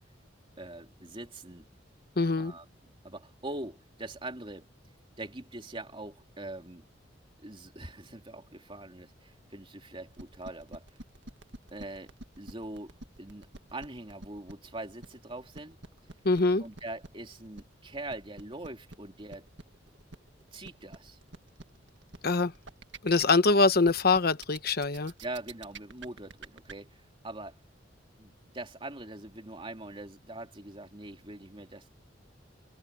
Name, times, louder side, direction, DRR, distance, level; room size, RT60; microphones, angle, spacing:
voice 1, 0.6-1.7 2.4-2.6 3.0-4.7 5.2-6.8 7.4-10.9 11.7-12.9 13.2-15.8 16.6-19.5 20.5-21.2 25.2-27.6 28.2-31.9, right 2 dB, 30° right, 2.9 m, -42 dB
voice 2, 2.2-2.5 16.2-16.6 22.2-22.5 23.0-25.1, left 3 dB, 55° left, 1.1 m, -24 dB
sound 1, 10.1-26.7, right 3 dB, 70° right, 1.8 m, -47 dB
head